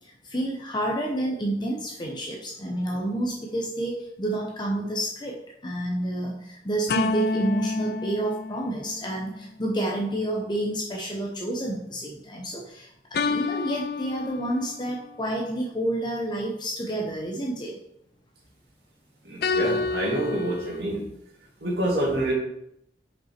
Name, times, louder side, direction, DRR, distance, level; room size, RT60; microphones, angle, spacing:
voice 1, 0.0-17.8, right 1 dB, 25° left, -1 dB, 0.8 m, -29 dB
sound 1, 6.9-9.4 13.1-15.0 19.4-20.8, left 4 dB, 60° left, 0.4 m, -29 dB
voice 2, 19.2-21.0 21.6-22.3, right 1 dB, 65° right, -3 dB, 2.4 m, -27 dB
5.8 x 5.3 x 4.4 m, 0.77 s
head